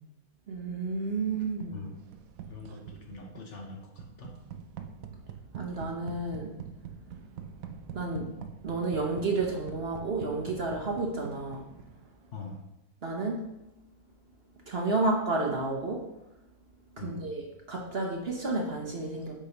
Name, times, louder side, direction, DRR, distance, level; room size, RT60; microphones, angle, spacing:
voice 1, 0.5-1.8 5.5-6.5 7.9-8.3 8.6-11.7 13.0-13.4 14.7-16.0 16.9-19.3, right 3 dB, 50° right, 0 dB, 1.0 m, -31 dB
sound 1, 1.3-12.2, right 7 dB, 70° right, 1.0 m, -45 dB
voice 2, 2.5-4.4 12.3-12.6 17.0-17.2, left 3 dB, 55° left, 1 dB, 1.3 m, -43 dB
8.3 x 5.1 x 2.9 m, 0.93 s
omnidirectional pair, 1.6 m